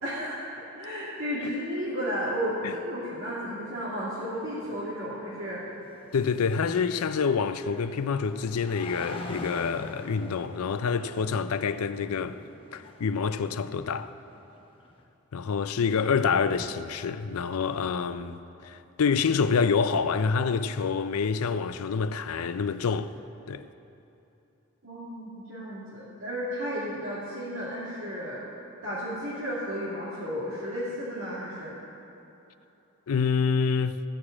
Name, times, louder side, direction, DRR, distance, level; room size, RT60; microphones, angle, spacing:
voice 1, 0.0-0.4 0.7-5.6 24.8-28.4 28.8-31.7, equal, 65° right, 2.2 m, -33 dB
sound 1, 4.3-15.0, left 2 dB, 25° left, 1.0 m, -45 dB
voice 2, 6.1-12.4 12.7-14.1 15.3-23.1 23.5-23.6 33.1-34.0, left 5 dB, 80° left, 0.5 m, -27 dB
14.5 x 4.9 x 8.6 m
head